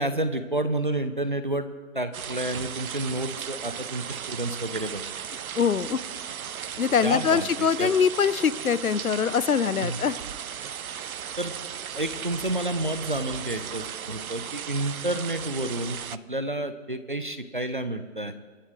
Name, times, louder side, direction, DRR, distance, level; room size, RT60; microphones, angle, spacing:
voice 1, 0.0-1.7 1.9-5.0 7.0-7.9 9.8-10.0 11.4-11.5 12.0-18.3, right 1 dB, 35° right, 10 dB, 0.7 m, -30 dB
sound 1, 2.1-16.2, right 8 dB, 80° right, 0.6 m, -36 dB
voice 2, 5.6-6.0 6.8-10.2, left 7 dB, 80° left, 17 dB, 0.8 m, -23 dB
24.5 x 12.0 x 3.2 m, 1.4 s
hypercardioid pair, 180°, 42 cm